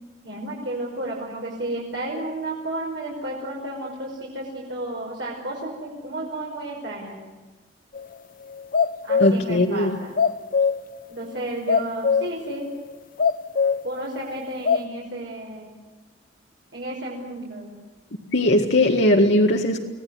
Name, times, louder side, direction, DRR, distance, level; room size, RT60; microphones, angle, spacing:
voice 1, 0.2-7.2 9.0-10.2 11.1-12.7 13.8-15.7 16.7-17.8, right 1 dB, 65° right, -4 dB, 5.5 m, -32 dB
sound 1, 8.0-8.1 8.5-9.4 9.9-10.9 11.3-11.4 11.7-12.4 12.8-12.9 13.2-13.9 14.3-14.8, left 6 dB, 50° left, 0.8 m, -22 dB
voice 2, 9.2-10.0 18.3-19.8, left 1 dB, 65° left, 0 dB, 1.9 m, -19 dB
26.0 x 17.5 x 9.7 m, 1.2 s
head